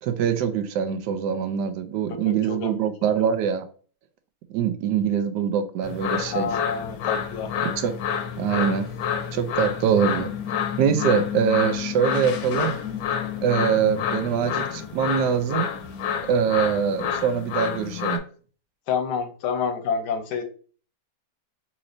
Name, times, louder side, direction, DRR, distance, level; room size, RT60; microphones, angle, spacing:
voice 1, 0.0-3.7 4.5-6.5 7.6-8.0 8.4-8.9 9.3-10.3 10.8-12.7 13.4-15.7 16.2-18.2, right 7 dB, 85° right, 1.2 m, -23 dB
voice 2, 2.2-2.7 6.3-7.5 18.9-20.4, left 6 dB, 90° left, 1.3 m, -28 dB
sound 1, 5.8-18.2, left 8 dB, 70° left, 1.0 m, -29 dB
4.1 x 2.9 x 2.5 m
omnidirectional pair, 1.8 m